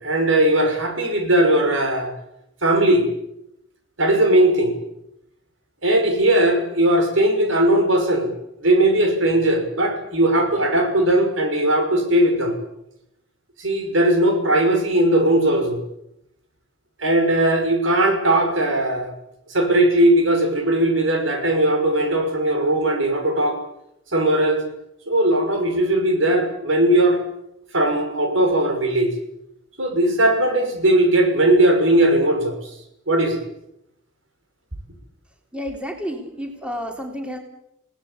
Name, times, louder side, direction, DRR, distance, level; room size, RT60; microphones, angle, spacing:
voice 1, 0.0-2.1 2.6-3.0 4.0-4.7 5.8-8.3 8.6-12.5 13.6-15.8 17.0-19.1 19.5-23.6 24.1-24.6 25.1-27.2 27.7-29.1 29.8-32.7 33.1-33.4, right 1 dB, 85° right, 4 dB, 6.1 m, -18 dB
voice 2, 35.5-37.4, equal, 5° right, 3 dB, 3.4 m, -30 dB
28.5 x 18.5 x 8.6 m, 0.83 s
head